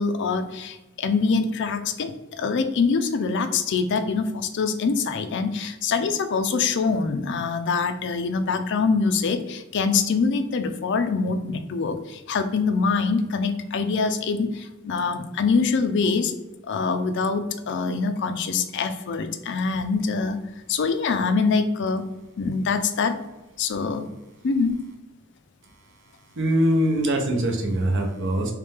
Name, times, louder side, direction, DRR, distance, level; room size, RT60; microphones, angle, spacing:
voice 1, 0.0-16.3 16.6-20.4 20.7-22.1 22.4-23.2 23.6-24.1 24.4-24.8, left 4 dB, 55° left, 8 dB, 0.4 m, -24 dB
voice 2, 26.4-28.5, right 1 dB, 55° right, 3 dB, 0.7 m, -22 dB
3.2 x 3.2 x 3.4 m, 1.0 s
head